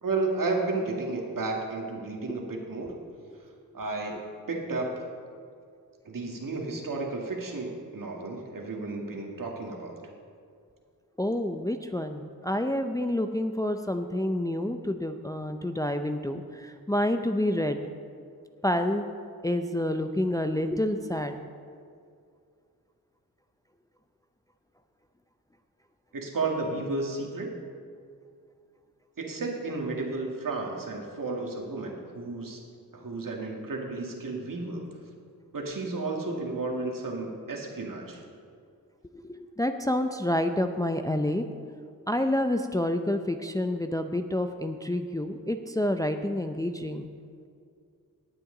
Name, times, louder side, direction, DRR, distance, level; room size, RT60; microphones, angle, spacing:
voice 1, 0.0-2.9 3.7-5.0 6.0-10.0 26.1-27.5 29.2-32.6 32.9-34.9 35.5-38.2, right 3 dB, 60° right, 1 dB, 2.0 m, -32 dB
voice 2, 11.2-17.8 18.6-19.1 19.4-21.4 39.1-41.5 42.1-47.1, left 1 dB, 10° left, 7 dB, 0.5 m, -28 dB
18.0 x 7.7 x 3.9 m, 2.3 s
cardioid pair, 65°, 37 cm